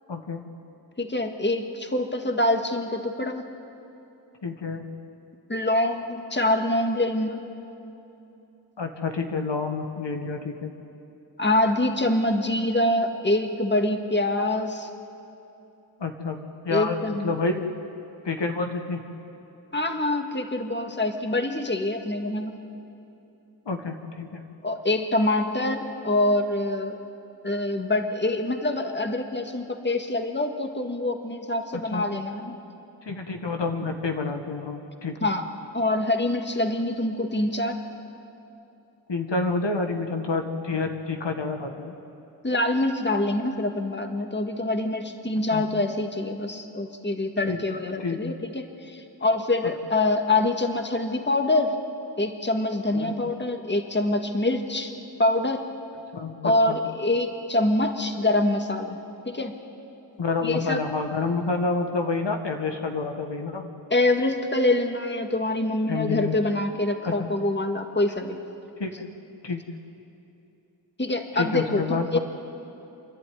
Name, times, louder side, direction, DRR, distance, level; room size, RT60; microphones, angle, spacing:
voice 1, 0.1-0.4 4.4-4.9 8.8-10.7 16.0-16.4 16.6-17.0 17.2-17.6 18.2-19.0 23.6-24.4 31.9-32.0 33.0-35.3 39.1-42.0 45.5-45.6 47.4-47.6 48.0-48.3 52.9-53.1 56.1-56.8 60.2-63.6 65.9-66.3 67.0-67.3 68.8-69.0 69.4-69.6 71.4-72.2, left 4 dB, 75° left, 4 dB, 1.7 m, -28 dB
voice 2, 1.0-3.4 5.5-7.4 11.4-14.9 16.7-17.4 19.7-22.6 24.6-27.0 27.4-32.6 35.2-35.5 35.7-37.8 42.4-51.7 52.2-54.9 55.2-55.6 56.4-59.0 59.3-59.5 60.4-60.8 63.9-68.4 71.0-72.2, left 2 dB, 25° left, 5 dB, 1.8 m, -25 dB
29.0 x 11.0 x 9.5 m, 2.9 s
cardioid pair, 45°, 43 cm